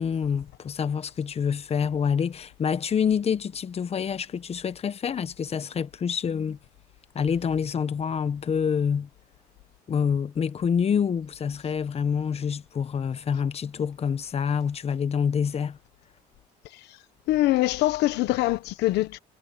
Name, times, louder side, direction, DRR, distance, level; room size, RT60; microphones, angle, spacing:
voice 1, 0.0-6.6 7.1-9.1 9.9-15.8, left 7 dB, 35° left, 1.1 m, -27 dB
voice 2, 17.3-19.2, left 16 dB, 85° left, 1.2 m, -23 dB
cardioid pair, 110°, 17 cm